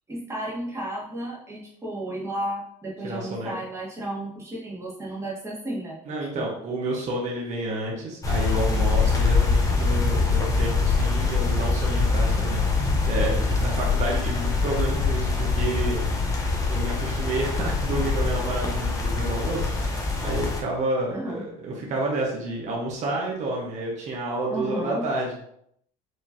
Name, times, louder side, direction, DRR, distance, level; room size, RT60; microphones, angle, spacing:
voice 1, 0.1-6.5 21.1-21.5 24.5-25.1, right 1 dB, 15° right, -5 dB, 1.6 m, -33 dB
voice 2, 3.0-3.5 6.1-16.0 16.4-25.4, right 1 dB, 50° right, -2 dB, 1.2 m, -30 dB
sound 1, 8.2-20.6, left 4 dB, 20° left, 0.9 m, -24 dB
4.9 x 3.0 x 2.9 m, 0.70 s
cardioid pair, 110°, 16 cm